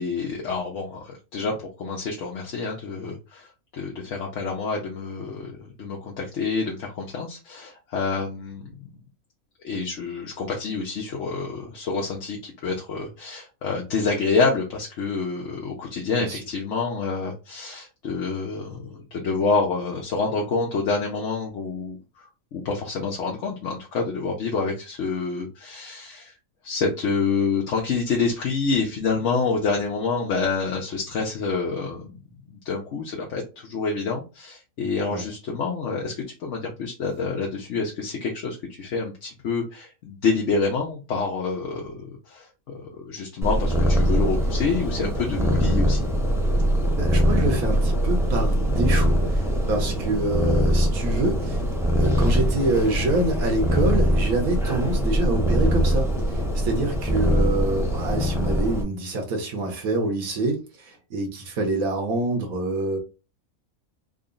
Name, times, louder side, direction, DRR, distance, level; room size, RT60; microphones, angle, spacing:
voice 1, 0.0-8.7 9.6-26.3 26.6-32.2 32.5-42.5 42.7-46.1, left 4 dB, 60° left, 1.0 m, -27 dB
Purr, 43.4-58.8, equal, 5° right, 0.4 m, -22 dB
voice 2, 47.0-51.6 52.0-56.1 56.3-63.0, right 2 dB, 75° right, 1.5 m, -26 dB
3.9 x 2.1 x 3.8 m
omnidirectional pair, 1.5 m